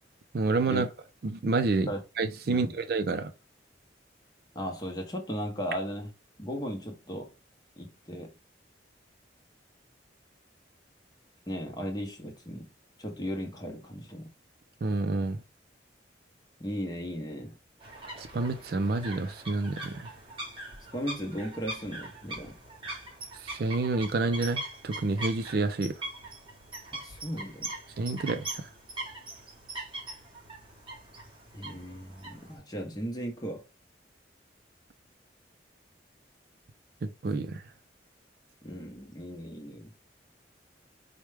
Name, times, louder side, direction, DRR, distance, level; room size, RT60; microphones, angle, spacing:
voice 1, 0.3-0.9 1.2-1.9 2.2-3.3 14.8-15.4 18.2-20.1 23.4-25.9 28.0-28.7 37.0-37.6, right 3 dB, 55° right, 0.4 m, -29 dB
voice 2, 2.4-2.8 4.5-6.1 6.4-7.3 7.8-8.3 11.5-12.7 13.0-14.3 16.6-17.6 20.9-22.6 26.9-27.7 31.5-33.6 38.6-39.9, equal, 20° left, 0.8 m, -36 dB
sound 1, 17.8-32.6, right 1 dB, 25° right, 1.0 m, -41 dB
4.5 x 2.2 x 3.2 m
head